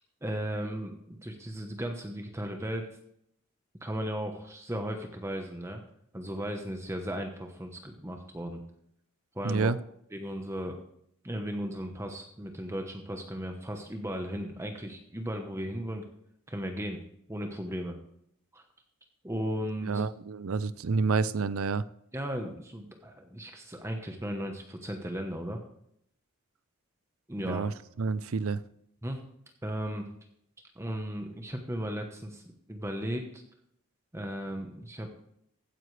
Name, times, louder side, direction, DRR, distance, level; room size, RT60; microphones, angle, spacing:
voice 1, 0.2-2.9 3.8-5.8 6.1-8.6 9.3-9.7 10.1-10.8 11.2-16.0 16.5-18.0 18.5-18.6 19.2-20.0 22.1-25.6 27.3-27.6 29.0-29.2 29.6-30.1 30.8-32.4 32.7-33.4 34.1-35.1, equal, 15° right, 1.0 m, -36 dB
voice 2, 9.4-9.8 19.8-21.9 27.5-28.6, right 4 dB, 80° right, 0.6 m, -29 dB
15.5 x 9.9 x 3.3 m
head